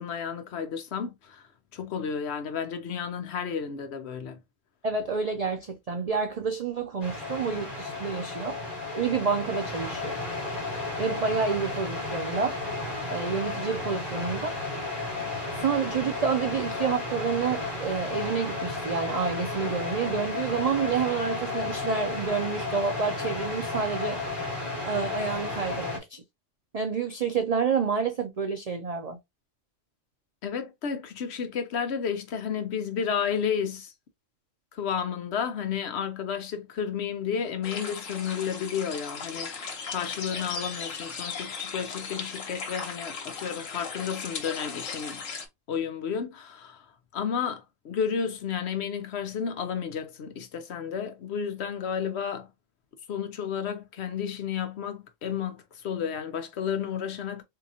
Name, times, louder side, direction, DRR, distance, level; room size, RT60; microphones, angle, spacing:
voice 1, 0.0-1.4 1.7-4.4 30.4-33.9 34.7-39.5 39.9-45.2 45.7-46.9 47.1-52.5 53.1-57.4, left 7 dB, 60° left, 0.8 m, -32 dB
voice 2, 4.8-8.6 8.9-10.2 11.0-12.6 13.1-14.6 15.5-24.2 24.9-26.2 26.7-29.2, right 6 dB, 80° right, 0.3 m, -29 dB
sound 1, 7.0-26.0, left 3 dB, 30° left, 1.3 m, -33 dB
sound 2, 37.6-45.5, left 5 dB, 75° left, 1.3 m, -37 dB
3.7 x 2.8 x 2.7 m
omnidirectional pair, 1.3 m